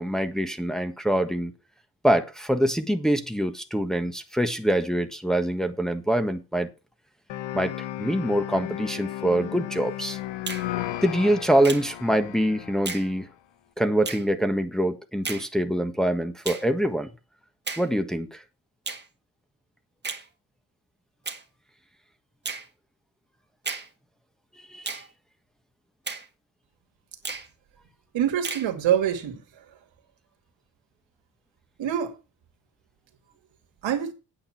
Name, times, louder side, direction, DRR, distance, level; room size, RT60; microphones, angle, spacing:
voice 1, 0.0-1.5 2.0-6.7 7.5-10.2 11.0-13.3 13.8-17.1 17.8-18.4 24.7-24.9, right 1 dB, ahead, 1.5 m, -25 dB
sound 1, 7.3-13.2, left 14 dB, 85° left, 0.9 m, -35 dB
Finger snapping, 10.5-10.7 11.6-11.9 12.9-13.1 14.0-14.3 15.2-15.5 16.4-16.7 17.7-17.9 18.9-19.1 20.0-20.3 21.2-21.4 22.4-22.7 23.6-23.9 24.8-25.1 26.1-26.3 27.2-27.5 28.4-28.7, right 4 dB, 25° right, 1.7 m, -33 dB
voice 2, 28.1-29.6 31.8-32.2 33.8-34.1, right 9 dB, 90° right, 2.4 m, -25 dB
9.0 x 8.5 x 5.9 m
cardioid pair, 100°, 44 cm